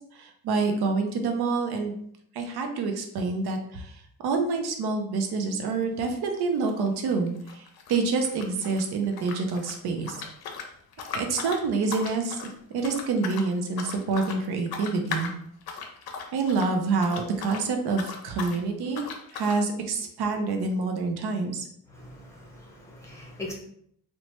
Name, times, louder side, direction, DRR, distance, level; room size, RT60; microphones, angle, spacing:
voice 1, 0.1-2.0 2.3-10.2 11.1-12.4 12.7-15.3 16.3-19.1 19.3-21.7, right 4 dB, 85° right, 4 dB, 0.5 m, -27 dB
sound 1, 5.8-6.0 6.3-8.8 9.1-17.7 17.9-18.6 18.9-19.6, left 5 dB, 75° left, 0.5 m, -38 dB
voice 2, 21.9-23.5, left 2 dB, 10° left, -3 dB, 0.7 m, -41 dB
3.0 x 2.1 x 2.9 m, 0.67 s
wide cardioid pair, 155°, 38 cm